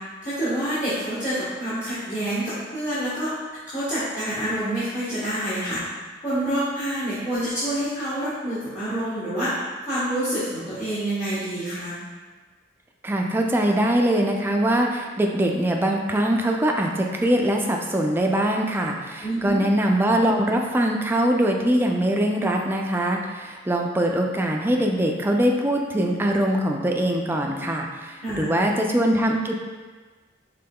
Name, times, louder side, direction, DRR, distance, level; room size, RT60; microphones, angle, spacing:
voice 1, 0.2-3.3 3.7-5.8 6.2-9.5 9.9-11.9 19.2-19.6 28.2-28.4, right 1 dB, 40° left, -13 dB, 1.3 m, -27 dB
voice 2, 13.0-29.5, right 1 dB, 10° right, 1 dB, 0.3 m, -22 dB
5.3 x 3.6 x 2.2 m, 1.4 s
head